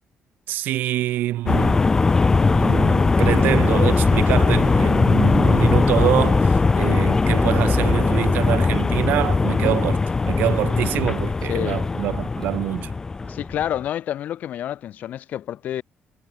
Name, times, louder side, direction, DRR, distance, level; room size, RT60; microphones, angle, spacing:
voice 1, 0.5-1.8 2.5-12.9, right 14 dB, 80° right, 4.0 m, -25 dB
sound 1, 1.5-13.8, left 4 dB, 20° left, 2.4 m, -19 dB
voice 2, 11.5-11.8 13.3-15.8, left 11 dB, 60° left, 2.6 m, -28 dB
cardioid pair, 155°, 3 cm